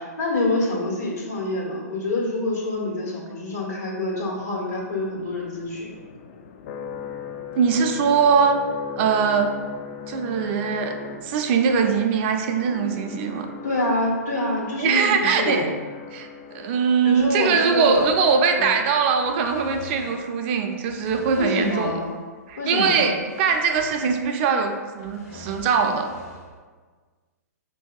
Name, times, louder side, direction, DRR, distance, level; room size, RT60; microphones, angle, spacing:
voice 1, 0.0-6.0 13.6-15.6 17.0-18.1 18.6-18.8 21.4-22.1 22.6-23.1, left 2 dB, 80° left, -4 dB, 1.4 m, -26 dB
sound 1, 3.9-20.1, left 6 dB, 45° left, 0.3 m, -40 dB
voice 2, 7.6-8.6 9.0-9.5 10.1-10.9 11.2-13.5 14.8-15.7 16.1-16.3 16.5-21.9 22.5-26.1, right 6 dB, 40° right, 4 dB, 0.4 m, -21 dB
sound 2, 17.1-18.8 19.1-20.3 20.8-22.2 22.5-22.6 23.2-24.4 24.7-26.6, equal, 65° left, 1.1 m, -44 dB
5.0 x 2.7 x 2.3 m, 1.5 s
hypercardioid pair, 125°, 9 cm